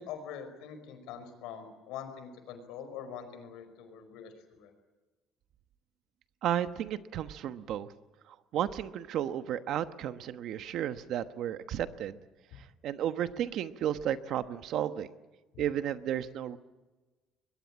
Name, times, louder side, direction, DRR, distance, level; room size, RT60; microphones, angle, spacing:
voice 1, 0.0-4.7 15.5-15.6, left 8 dB, 85° left, 8 dB, 4.9 m, -44 dB
voice 2, 6.4-7.9 8.5-12.2 12.8-15.1 15.6-16.6, right 10 dB, 55° right, 11 dB, 1.1 m, -33 dB
22.5 x 21.5 x 8.8 m, 1.2 s
cardioid pair, 150°, 0 cm